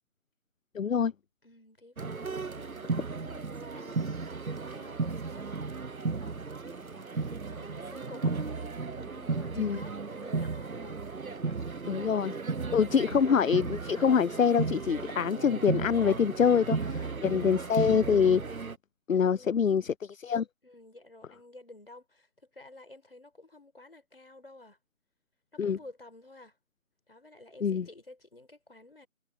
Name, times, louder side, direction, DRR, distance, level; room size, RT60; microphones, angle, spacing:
voice 1, 0.7-1.1 9.6-9.8 11.9-12.3 12.7-16.8 17.2-18.6 19.1-20.5 25.6-25.8 27.6-27.9, left 7 dB, 70° left, 0.5 m, -25 dB
voice 2, 1.4-8.7 9.0-11.8 12.6-13.2 15.9-16.1 16.7-17.1 19.1-19.9 20.6-24.8 25.5-26.6 27.1-29.1, left 2 dB, 45° left, 5.9 m, -52 dB
sound 1, 2.0-18.8, right 4 dB, 85° right, 1.0 m, -35 dB
figure-of-eight pair, 170°, 41 cm